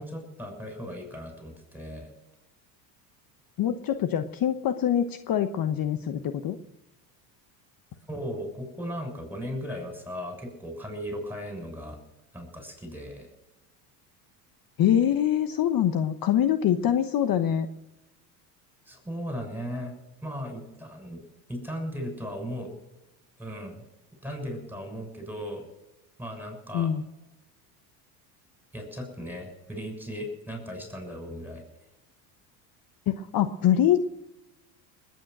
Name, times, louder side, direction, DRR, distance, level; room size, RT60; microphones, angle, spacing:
voice 1, 0.0-2.1 8.1-12.0 12.3-13.3 18.9-19.9 20.2-21.2 21.5-22.7 23.4-23.8 24.2-25.6 26.2-26.9 28.7-31.6, equal, 5° right, 5 dB, 6.8 m, -37 dB
voice 2, 3.6-6.6 14.8-17.7 26.7-27.0 33.1-34.0, left 10 dB, 45° left, 10 dB, 1.1 m, -24 dB
20.0 x 9.4 x 6.1 m, 0.94 s
supercardioid pair, 90°, 49 cm